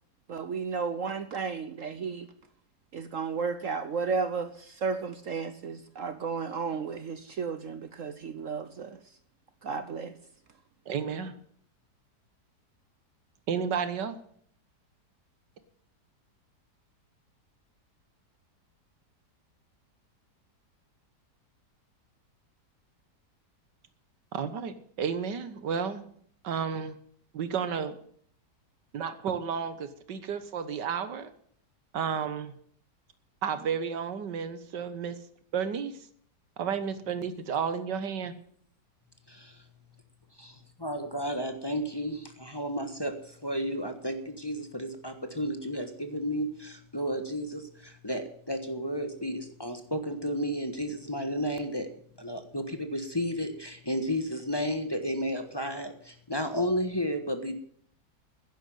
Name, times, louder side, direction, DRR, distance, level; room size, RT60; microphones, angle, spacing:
voice 1, 0.3-2.3 2.9-9.0 9.6-10.2, right 5 dB, 55° right, 11 dB, 1.1 m, -33 dB
voice 2, 10.9-11.3 13.5-14.2 24.3-26.1 26.4-27.0 27.3-28.0 28.9-31.3 31.9-32.5 33.4-35.2 35.5-36.0 36.6-38.3, right 7 dB, 90° right, 12 dB, 1.9 m, -32 dB
voice 3, 39.3-39.6 40.4-40.5 40.8-51.9 52.2-57.6, equal, 15° left, 6 dB, 1.4 m, -32 dB
10.5 x 10.5 x 9.1 m, 0.62 s
omnidirectional pair, 1.8 m